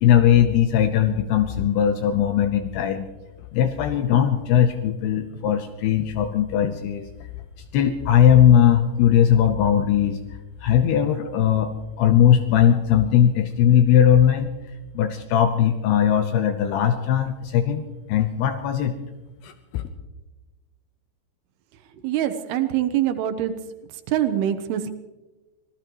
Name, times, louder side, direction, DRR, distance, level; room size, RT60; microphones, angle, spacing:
voice 1, 0.0-3.1 3.5-7.1 7.7-10.2 10.6-11.7 12.0-14.5 15.0-18.9 19.4-19.8, left 9 dB, 80° left, 8 dB, 2.7 m, -19 dB
voice 2, 22.0-23.6 24.1-24.9, right 11 dB, 75° right, 9 dB, 2.7 m, -24 dB
25.0 x 18.5 x 3.1 m, 1.2 s
omnidirectional pair, 5.1 m